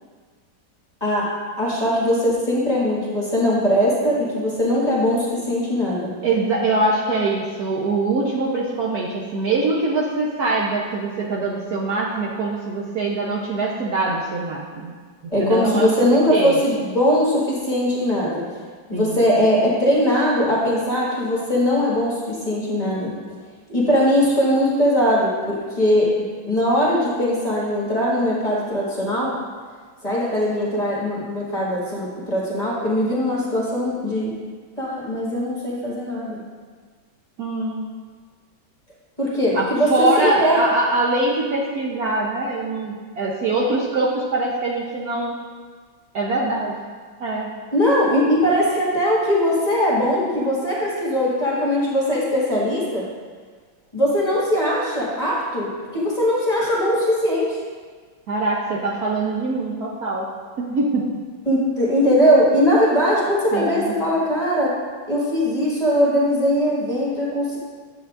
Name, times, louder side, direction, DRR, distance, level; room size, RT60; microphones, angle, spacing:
voice 1, 1.6-6.1 15.3-18.6 18.9-23.1 23.7-26.1 26.5-29.3 30.0-34.4 34.8-36.4 39.2-40.6 47.7-53.1 53.9-57.6 61.5-64.7 65.1-67.6, equal, 20° left, -6 dB, 1.6 m, -20 dB
voice 2, 6.2-14.9 15.4-15.9 16.3-16.6 18.9-19.2 37.4-37.9 39.5-45.4 46.1-46.7 47.2-47.5 58.3-60.3 60.6-61.1 63.5-64.0, right 2 dB, 60° right, -4 dB, 1.1 m, -23 dB
9.8 x 7.9 x 2.5 m, 1.6 s
omnidirectional pair, 2.1 m